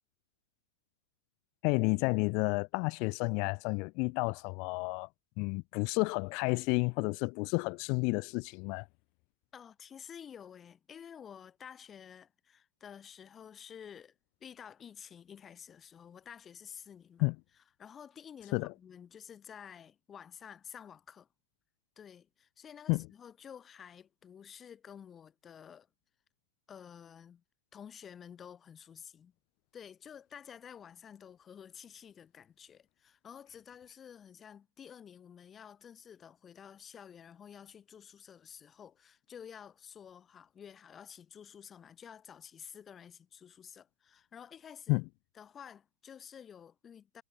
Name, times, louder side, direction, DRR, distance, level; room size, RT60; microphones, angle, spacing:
voice 1, 1.6-5.1 5.4-8.9 17.2-17.4 18.5-18.7 22.9-23.0 44.9-45.0, left 32 dB, 45° left, 0.3 m, -31 dB
voice 2, 9.5-14.1 14.4-17.2 17.8-21.3 22.0-25.9 26.7-27.4 27.7-29.3 29.7-45.0 45.4-47.2, left 8 dB, 20° left, 1.8 m, -51 dB
hypercardioid pair, 130°, 0 cm